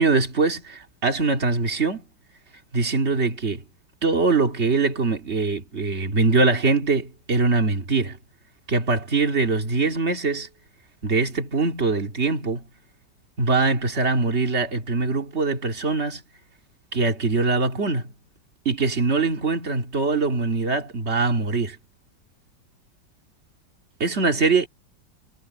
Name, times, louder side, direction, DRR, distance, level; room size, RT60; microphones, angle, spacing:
voice 1, 0.0-2.0 2.7-3.6 4.0-8.2 8.7-10.5 11.0-12.6 13.4-16.2 16.9-18.1 18.7-21.8 24.0-24.7, right 3 dB, 35° right, 2.4 m, -22 dB
omnidirectional pair, 2.0 m